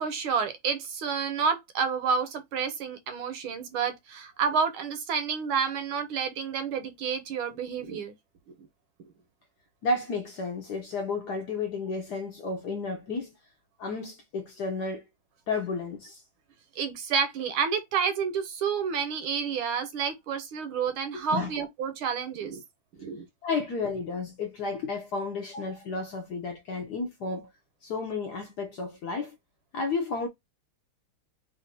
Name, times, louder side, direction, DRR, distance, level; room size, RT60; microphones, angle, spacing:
voice 1, 0.0-8.1 8.5-8.6 16.8-22.6 22.9-23.3, right 6 dB, 80° right, 1.6 m, -29 dB
voice 2, 9.8-13.3 13.8-15.0 15.5-16.2 21.1-21.5 23.4-27.5 27.8-29.4 29.7-30.3, left 3 dB, 70° left, 1.0 m, -32 dB
3.5 x 2.5 x 4.0 m
omnidirectional pair, 2.3 m